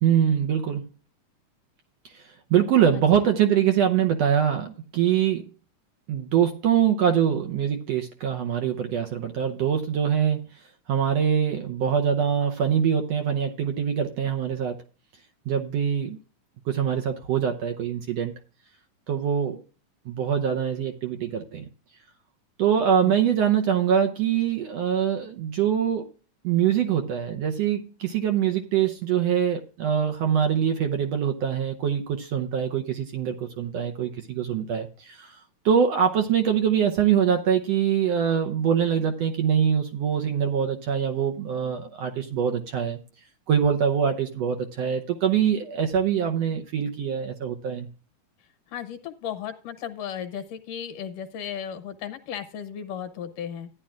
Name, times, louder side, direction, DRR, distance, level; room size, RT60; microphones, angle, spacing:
voice 1, 0.0-0.8 2.1-2.2 2.5-5.5 6.1-10.5 10.9-14.8 15.5-16.2 16.7-18.3 19.1-19.6 20.1-21.6 22.6-26.1 26.4-35.4 35.6-43.0 43.5-47.9, right 8 dB, 70° right, 4 dB, 1.6 m, -24 dB
voice 2, 48.7-53.7, left 8 dB, 75° left, 9 dB, 2.4 m, -35 dB
14.5 x 10.5 x 2.4 m, 0.36 s
omnidirectional pair, 3.9 m